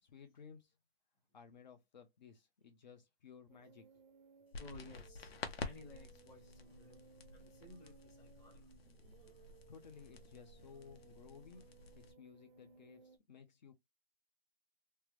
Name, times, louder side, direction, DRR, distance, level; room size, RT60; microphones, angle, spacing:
voice 1, 0.0-0.7 1.3-3.8 9.3-11.6 11.9-13.7, left 6 dB, 45° left, 0.7 m, -58 dB
sound 1, 3.5-13.2, right 5 dB, 55° right, 0.6 m, -64 dB
sound 2, 4.5-12.1, left 4 dB, 75° left, 0.9 m, -50 dB
voice 2, 4.6-8.7 9.0-9.4, left 2 dB, 10° left, 0.8 m, -57 dB
3.3 x 2.0 x 3.1 m
hypercardioid pair, 160°, 30 cm